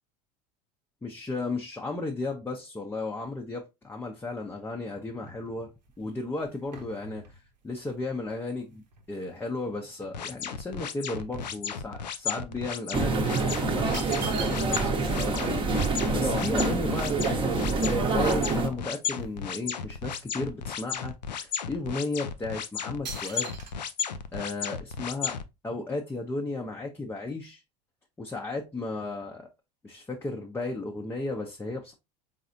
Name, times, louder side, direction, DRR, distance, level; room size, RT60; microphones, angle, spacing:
voice 1, 1.0-5.7 6.0-7.2 7.6-17.2 17.6-21.1 21.4-23.5 24.3-25.4 25.6-27.6 28.2-29.5 29.8-31.9, left 2 dB, 10° left, 0.6 m, -34 dB
sound 1, 4.5-9.6 10.0-12.2 12.5-12.7 13.4-15.0 15.3-15.4 15.6-17.7 18.3-18.4 18.6-19.4 19.7-20.9 21.5-21.6 22.3-22.5 23.0-23.7, right 5 dB, 80° right, 0.9 m, -45 dB
sound 2, 10.1-25.4, left 7 dB, 85° left, 0.4 m, -34 dB
sound 3, 12.9-18.7, right 3 dB, 25° right, 0.9 m, -26 dB
4.0 x 3.8 x 2.6 m
hypercardioid pair, 80°, 21 cm